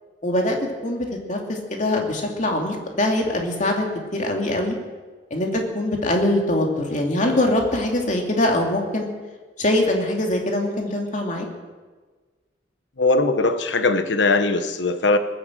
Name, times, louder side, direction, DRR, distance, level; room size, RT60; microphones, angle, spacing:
voice 1, 0.2-0.6 0.8-3.8 4.1-4.8 5.3-9.1 9.6-11.5, left 1 dB, 40° left, 1 dB, 2.7 m, -23 dB
voice 2, 13.0-15.2, left 3 dB, 75° left, 10 dB, 1.1 m, -20 dB
20.0 x 9.0 x 7.7 m, 1.3 s
head